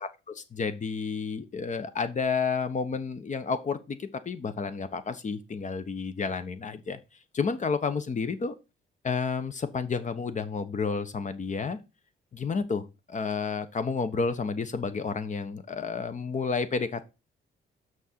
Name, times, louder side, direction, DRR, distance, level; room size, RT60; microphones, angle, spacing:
voice 1, 0.0-7.0 7.3-8.5 9.0-11.8 12.3-17.1, left 5 dB, 40° left, 1.2 m, -31 dB
6.5 x 6.3 x 4.5 m
cardioid pair, 90°, 20 cm